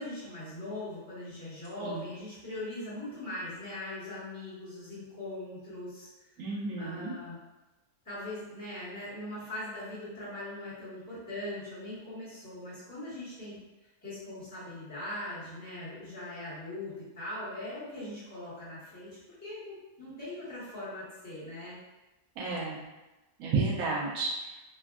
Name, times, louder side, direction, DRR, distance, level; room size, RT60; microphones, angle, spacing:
voice 1, 0.0-6.1 6.8-7.4 8.0-13.6 14.0-21.8, left 1 dB, 10° left, -14 dB, 1.1 m, -40 dB
voice 2, 6.4-7.1 22.4-22.9 23.4-24.5, right 3 dB, 70° right, -3 dB, 1.1 m, -32 dB
3.3 x 2.2 x 2.3 m, 1.1 s
omnidirectional pair, 1.7 m